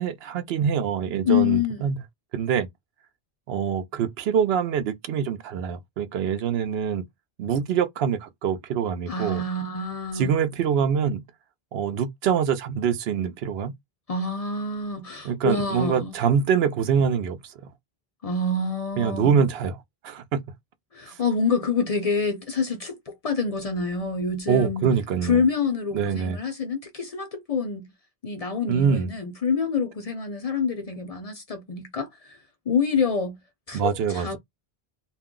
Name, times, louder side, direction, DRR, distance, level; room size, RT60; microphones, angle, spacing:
voice 1, 0.0-2.0 2.3-2.7 3.5-7.1 7.4-9.4 10.2-11.2 11.7-13.7 15.2-17.5 19.0-19.8 20.0-20.4 21.1-21.2 24.5-25.4 25.9-26.4 28.7-29.1 33.7-34.4, right 7 dB, 80° right, 0.8 m, -24 dB
voice 2, 1.2-1.9 9.1-10.3 14.1-16.2 18.2-19.4 20.9-24.9 25.2-27.9 28.2-32.4 32.7-33.4 33.7-34.4, left 5 dB, 45° left, 0.5 m, -27 dB
2.4 x 2.1 x 3.6 m
omnidirectional pair, 1.0 m